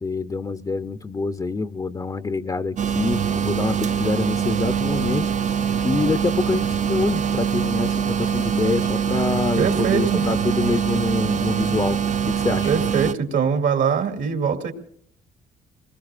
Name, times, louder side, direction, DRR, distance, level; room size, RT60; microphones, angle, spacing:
voice 1, 0.0-5.3 5.8-12.0 12.3-12.7, left 3 dB, 20° left, 10 dB, 0.6 m, -26 dB
sound 1, 2.8-13.1, right 7 dB, 40° right, 0.5 m, -23 dB
voice 2, 9.6-10.2 12.6-14.7, right 6 dB, 75° right, 4 dB, 2.4 m, -22 dB
27.0 x 20.5 x 2.5 m, 0.63 s
cardioid pair, 90°, 20 cm